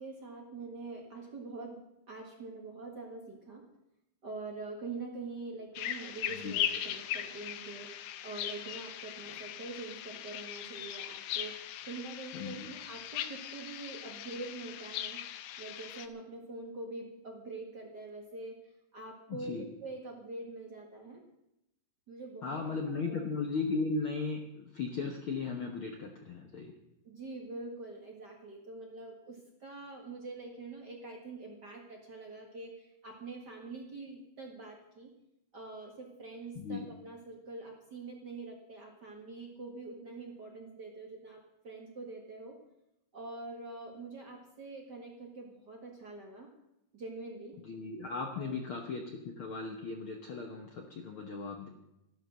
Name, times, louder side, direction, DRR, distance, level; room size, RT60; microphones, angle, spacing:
voice 1, 0.0-3.6 4.2-7.9 8.2-11.6 11.9-15.2 15.6-21.2 22.1-22.6 23.0-23.2 27.0-35.1 35.5-42.6 43.1-46.5 46.9-47.6 48.3-48.6, right 3 dB, 40° right, 1 dB, 1.8 m, -45 dB
sound 1, 5.8-16.1, left 11 dB, 80° left, 2.3 m, -39 dB
voice 2, 12.3-12.7 19.3-19.7 22.4-26.7 36.5-36.9 47.6-51.7, left 4 dB, 60° left, 3 dB, 1.4 m, -37 dB
13.0 x 12.5 x 6.4 m, 0.86 s
omnidirectional pair, 3.9 m